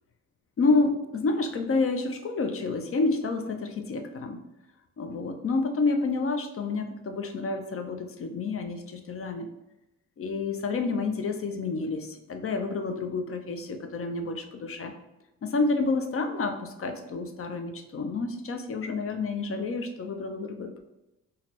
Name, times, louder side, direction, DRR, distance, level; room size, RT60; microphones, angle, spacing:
voice 1, 0.6-4.4 5.0-9.5 10.2-14.9 15.4-20.8, left 3 dB, 40° left, 6 dB, 0.5 m, -29 dB
3.9 x 2.2 x 2.8 m, 0.96 s
supercardioid pair, 50°, 35 cm